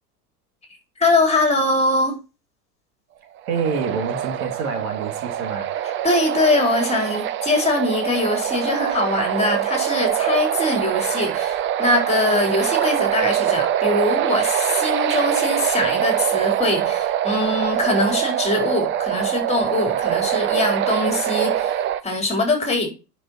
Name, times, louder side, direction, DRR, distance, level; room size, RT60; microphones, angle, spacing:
voice 1, 1.0-2.2 6.0-22.9, left 2 dB, 15° left, 4.0 m, -22 dB
sound 1, 3.5-22.0, right 11 dB, 25° right, 0.7 m, -23 dB
voice 2, 3.5-5.7, right 5 dB, 60° right, 3.1 m, -27 dB
10.0 x 6.3 x 4.2 m
figure-of-eight pair, 95°, 50 cm